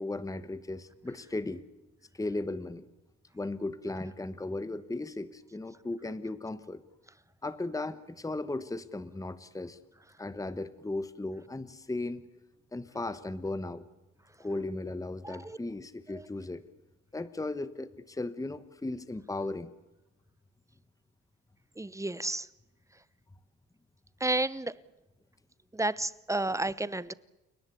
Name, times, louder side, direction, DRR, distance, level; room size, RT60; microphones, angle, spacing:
voice 1, 0.0-1.6 2.1-2.9 3.3-6.8 7.4-9.8 10.2-12.2 12.7-13.9 14.4-16.6 17.1-19.7, left 2 dB, 10° left, 13 dB, 1.2 m, -36 dB
voice 2, 15.2-15.6 16.1-16.2 21.8-22.5 24.2-24.7 25.7-27.1, right 2 dB, 10° right, 18 dB, 0.9 m, -31 dB
29.5 x 18.5 x 8.5 m, 0.98 s
cardioid pair, 90°, 30 cm